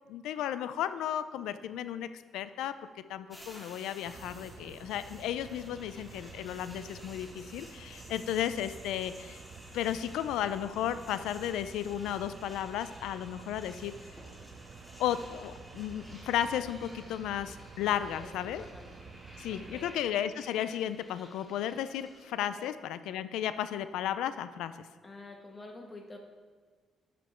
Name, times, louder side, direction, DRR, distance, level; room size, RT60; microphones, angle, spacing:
voice 1, 0.1-2.1 2.3-2.7 3.1-9.4 9.7-13.9 15.0-18.6 19.4-24.7, left 10 dB, 90° left, 12 dB, 0.4 m, -34 dB
sound 1, 3.3-22.2, equal, 5° left, 2.1 m, -54 dB
sound 2, 4.0-19.9, right 4 dB, 55° right, 0.8 m, -50 dB
voice 2, 18.1-18.9 19.5-20.0 22.6-22.7 25.0-26.2, left 2 dB, 25° left, 2 dB, 1.5 m, -48 dB
12.0 x 5.1 x 4.4 m, 1.5 s
cardioid pair, 90°, 0 cm